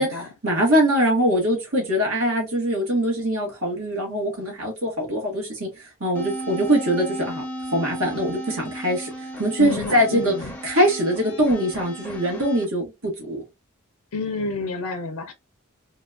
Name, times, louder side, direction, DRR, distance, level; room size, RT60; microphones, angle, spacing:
voice 1, 0.0-7.4 7.7-9.1 9.4-10.3 10.6-13.4, equal, 75° right, 1.4 m, -22 dB
sound 1, 6.1-12.6, right 1 dB, 5° left, 0.6 m, -35 dB
voice 2, 9.6-10.5 14.1-15.3, left 3 dB, 90° left, 0.6 m, -29 dB
4.0 x 2.3 x 2.5 m
head